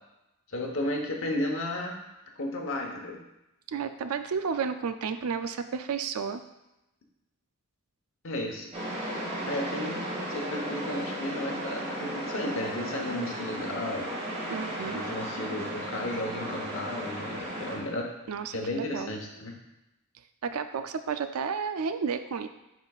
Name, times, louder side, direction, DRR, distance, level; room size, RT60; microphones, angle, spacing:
voice 1, 0.5-2.0 2.4-3.2 8.2-8.7 9.4-10.0 10.3-14.1 14.8-18.1 18.5-19.5, left 1 dB, 60° left, 1 dB, 1.0 m, -33 dB
voice 2, 3.7-6.4 14.5-15.0 18.3-19.1 20.4-22.5, right 6 dB, 85° right, 10 dB, 0.4 m, -32 dB
sound 1, 8.7-17.8, right 1 dB, 30° right, 1.9 m, -35 dB
10.5 x 4.1 x 2.4 m, 0.94 s
head